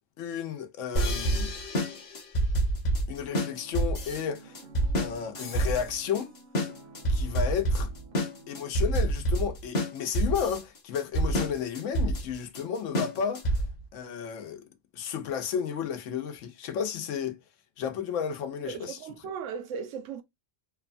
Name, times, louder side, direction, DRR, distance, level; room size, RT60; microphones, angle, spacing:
voice 1, 0.2-1.5 3.1-4.6 5.0-6.3 7.1-7.9 8.5-13.6 13.9-14.7 14.9-17.4 17.8-19.0 19.2-19.3, left 8 dB, 85° left, 1.0 m, -32 dB
sound 1, 1.0-13.8, right 1 dB, 45° left, 0.7 m, -28 dB
sound 2, 3.3-8.6, right 4 dB, 50° right, 0.6 m, -51 dB
voice 2, 18.6-20.2, right 6 dB, 80° right, 0.9 m, -37 dB
3.0 x 2.1 x 2.4 m
omnidirectional pair, 1.3 m